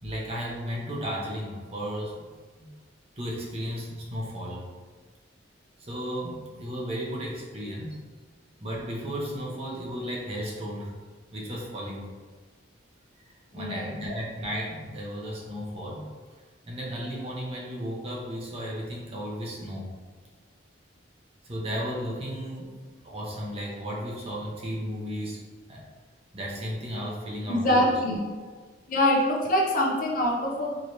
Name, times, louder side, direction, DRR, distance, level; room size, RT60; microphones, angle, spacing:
voice 1, 0.0-2.2 2.6-2.7 3.2-4.7 5.8-8.0 8.6-10.9 11.3-12.1 13.5-16.1 16.7-19.9 21.4-25.4 25.7-25.9 26.3-27.9 28.4-28.5, equal, 30° right, -3 dB, 0.8 m, -34 dB
voice 2, 13.5-13.9 27.5-28.3 28.9-30.8, left 1 dB, 45° left, -1 dB, 0.6 m, -24 dB
4.6 x 3.0 x 3.2 m, 1.4 s
head